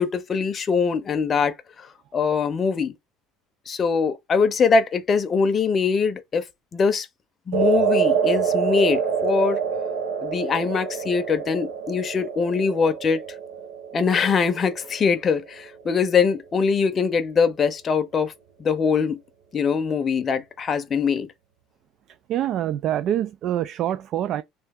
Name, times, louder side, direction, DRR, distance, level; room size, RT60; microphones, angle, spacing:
voice 1, 0.0-2.9 3.7-6.5 6.7-7.1 7.5-9.6 10.2-13.2 13.9-18.3 18.6-19.2 19.5-21.3, left 5 dB, 30° left, 0.6 m, -22 dB
sound 1, 7.5-15.9, right 7 dB, 90° right, 0.8 m, -26 dB
voice 2, 22.1-24.4, right 11 dB, 50° right, 0.3 m, -26 dB
3.3 x 2.7 x 3.5 m
cardioid pair, 125°, 0 cm